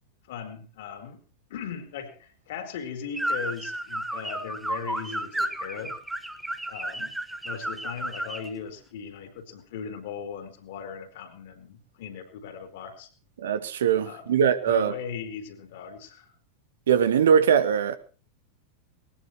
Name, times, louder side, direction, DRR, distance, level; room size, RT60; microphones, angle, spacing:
voice 1, 0.3-1.2 1.5-6.0 6.7-7.1 7.4-13.1 14.0-16.4, left 7 dB, 55° left, 3.9 m, -38 dB
sound 1, 3.1-8.5, right 1 dB, 5° right, 1.4 m, -32 dB
voice 2, 13.4-14.9 16.9-18.0, right 8 dB, 60° right, 1.2 m, -21 dB
20.5 x 19.0 x 3.0 m
figure-of-eight pair, 90°, 0 cm